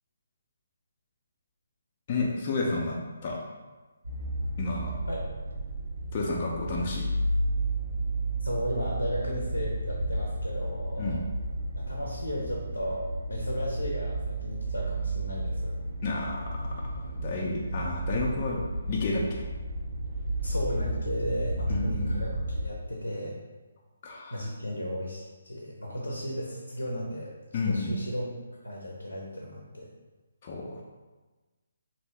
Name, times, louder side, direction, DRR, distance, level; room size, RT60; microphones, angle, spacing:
voice 1, 2.1-3.0 3.2-3.4 4.6-4.9 6.1-7.1 11.0-11.2 16.0-18.6 18.9-19.5 21.7-22.2 24.0-24.5 27.5-27.9 30.4-30.8, left 3 dB, 35° left, -3 dB, 0.4 m, -31 dB
sound 1, 4.0-22.7, right 1 dB, 75° right, 0.5 m, -32 dB
voice 2, 8.4-11.2 11.8-15.8 20.4-23.4 24.3-27.3 27.7-28.2 28.6-29.9, equal, 90° left, -3 dB, 0.6 m, -34 dB
2.7 x 2.6 x 3.2 m, 1.2 s
figure-of-eight pair, 145°, 0 cm